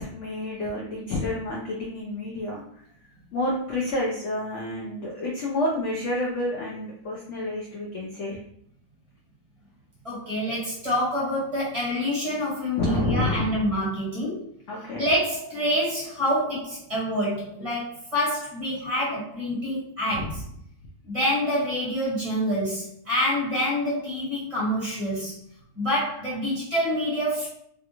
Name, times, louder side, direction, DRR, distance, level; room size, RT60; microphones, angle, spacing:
voice 1, 0.0-2.6 3.3-8.4 12.8-13.7 14.7-15.0 20.1-20.3, left 2 dB, 70° left, -2 dB, 0.7 m, -29 dB
voice 2, 10.0-14.4 15.0-20.4 21.1-25.3 25.7-27.5, equal, 20° right, -8 dB, 1.4 m, -27 dB
3.3 x 2.3 x 2.9 m, 0.68 s
omnidirectional pair, 1.9 m